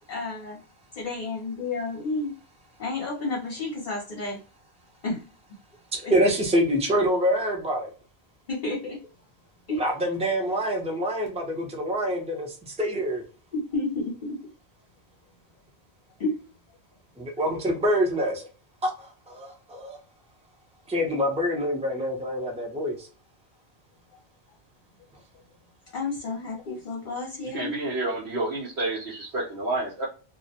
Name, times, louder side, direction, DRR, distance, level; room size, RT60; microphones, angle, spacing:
voice 1, 0.1-0.6 1.0-2.3 2.8-4.4 5.0-5.2 6.0-6.1 8.5-9.0 9.7-9.8 13.5-14.4 16.2-16.4 25.9-27.7, left 3 dB, 50° left, -1 dB, 0.8 m, -31 dB
voice 2, 5.9-7.9 9.8-13.2 17.2-18.5 18.8-20.0 20.9-23.1, equal, 10° right, 1 dB, 0.5 m, -26 dB
voice 3, 27.5-30.1, right 2 dB, 80° right, -6 dB, 1.1 m, -29 dB
2.4 x 2.1 x 2.7 m, 0.36 s
omnidirectional pair, 1.1 m